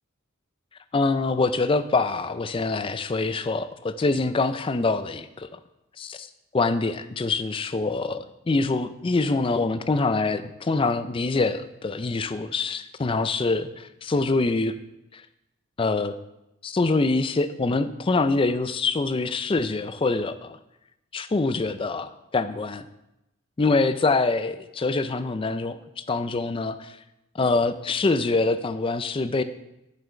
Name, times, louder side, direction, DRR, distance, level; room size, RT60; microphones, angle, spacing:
voice 1, 0.9-5.5 6.0-6.3 6.5-14.7 15.1-15.2 15.8-16.1 16.6-20.6 21.1-22.8 23.6-26.9 27.3-29.4, left 3 dB, 25° left, 12 dB, 0.4 m, -25 dB
7.4 x 5.6 x 5.1 m, 0.89 s
head